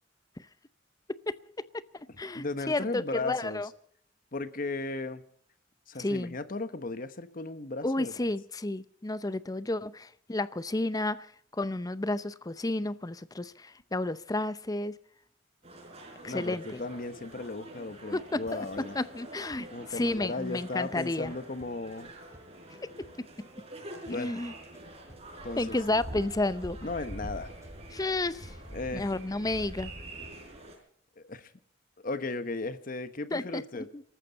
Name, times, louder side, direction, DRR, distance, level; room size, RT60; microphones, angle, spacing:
voice 1, 1.1-1.7 2.2-3.7 6.0-6.3 7.8-15.0 16.2-16.8 18.1-21.3 22.8-23.3 24.1-24.5 25.6-26.8 27.9-28.5 28.9-29.9 33.3-34.0, left 2 dB, 20° left, 0.6 m, -32 dB
voice 2, 2.3-3.6 4.3-5.2 5.9-8.3 16.3-19.0 19.7-22.1 24.1-24.3 25.4-25.7 26.8-27.5 28.7-29.1 31.2-31.5 32.0-33.9, left 3 dB, 50° left, 1.1 m, -36 dB
sound 1, 15.6-30.8, right 1 dB, 35° right, 4.6 m, -45 dB
sound 2, 18.5-29.2, equal, 15° right, 2.1 m, -58 dB
25.5 x 14.0 x 4.1 m
head